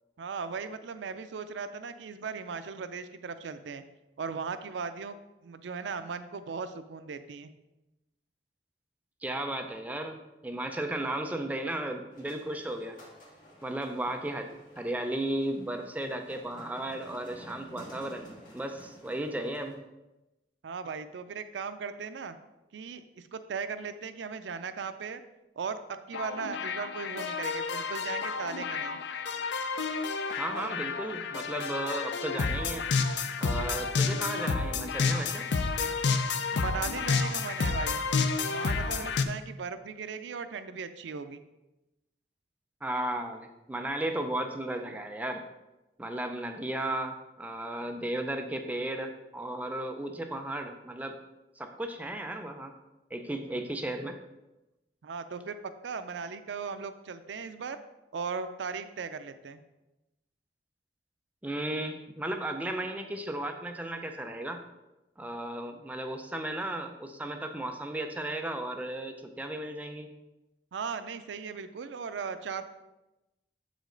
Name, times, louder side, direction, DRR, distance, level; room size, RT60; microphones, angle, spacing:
voice 1, 0.2-3.8 4.2-5.2 5.4-7.5 20.6-22.4 22.7-25.2 25.6-25.8 26.1-29.0 36.5-38.0 38.5-41.4 55.0-55.6 55.8-57.8 58.1-59.6 70.7-72.6, right 5 dB, 90° right, 10 dB, 0.4 m, -37 dB
voice 2, 9.2-13.0 13.6-18.3 18.5-19.8 30.4-32.8 33.4-35.4 42.8-45.4 46.0-51.2 51.6-52.7 53.1-54.2 61.4-64.6 65.2-70.1, right 1 dB, 10° right, 5 dB, 0.4 m, -35 dB
sound 1, 12.1-19.7, right 1 dB, 50° left, 2.0 m, -52 dB
sound 2, 26.1-39.2, left 4 dB, 75° left, 0.5 m, -30 dB
7.4 x 5.1 x 3.8 m, 0.99 s
head